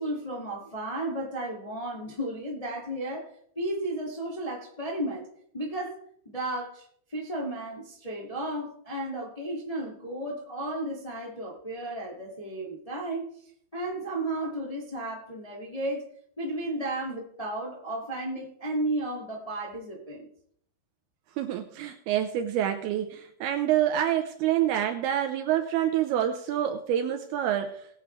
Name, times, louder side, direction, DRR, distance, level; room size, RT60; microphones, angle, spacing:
voice 1, 0.0-3.3 3.5-5.3 5.5-6.0 6.2-13.3 13.7-16.1 16.4-20.3, right 1 dB, 15° left, -2 dB, 1.1 m, -33 dB
voice 2, 21.4-27.9, right 11 dB, 80° right, 5 dB, 2.6 m, -27 dB
20.5 x 8.3 x 3.3 m, 0.65 s
omnidirectional pair, 4.8 m